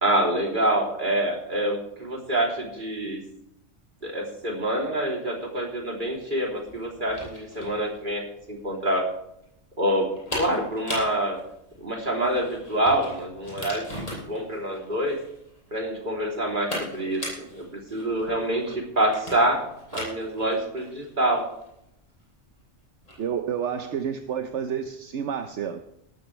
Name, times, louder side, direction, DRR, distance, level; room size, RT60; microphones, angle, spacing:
voice 1, 0.0-3.2 4.0-9.0 9.8-10.1 10.4-11.4 11.8-13.8 14.1-15.2 15.7-19.6 19.9-21.5, right 1 dB, 40° right, -1 dB, 3.6 m, -26 dB
sound 1, 5.9-23.3, left 1 dB, 30° left, 6.4 m, -40 dB
voice 2, 23.2-25.8, right 8 dB, 75° right, 7 dB, 1.2 m, -29 dB
18.0 x 13.5 x 3.4 m, 0.77 s
omnidirectional pair, 1.2 m